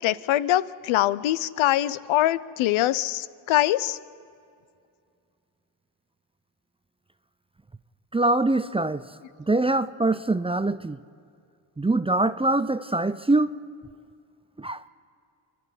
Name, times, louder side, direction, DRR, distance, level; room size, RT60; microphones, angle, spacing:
voice 1, 0.0-4.0, left 14 dB, 70° left, 0.8 m, -23 dB
voice 2, 8.1-9.0 9.5-11.0 11.8-13.5 14.6-14.8, right 2 dB, 10° right, 0.6 m, -23 dB
27.0 x 11.0 x 9.8 m
supercardioid pair, 65°, 49 cm